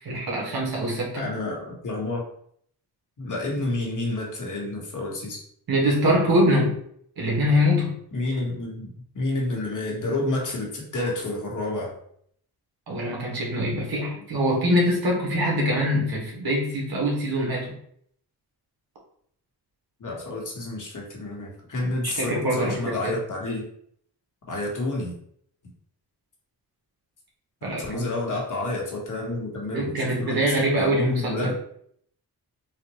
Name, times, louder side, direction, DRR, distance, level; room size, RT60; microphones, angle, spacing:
voice 1, 0.0-1.2 5.7-6.8 7.2-7.9 12.9-17.7 21.8-23.1 27.6-28.1 29.7-31.4, equal, 65° right, -2 dB, 1.5 m, -24 dB
voice 2, 1.1-2.3 3.2-5.4 8.1-11.9 20.0-23.7 24.5-25.1 27.8-31.5, left 2 dB, 50° left, -2 dB, 1.5 m, -29 dB
4.2 x 2.5 x 3.1 m, 0.65 s
cardioid pair, 75°, 39 cm